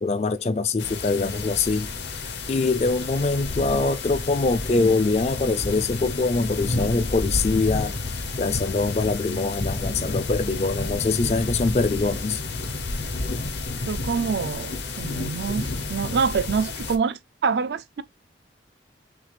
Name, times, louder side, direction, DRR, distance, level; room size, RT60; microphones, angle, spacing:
voice 1, 0.0-1.9 2.5-8.0 8.4-12.4, left 3 dB, 35° left, 0.4 m, -23 dB
sound 1, 0.8-17.0, left 2 dB, 75° left, 0.8 m, -30 dB
voice 2, 13.9-18.0, right 5 dB, 70° right, 0.4 m, -26 dB
6.0 x 2.4 x 3.2 m
head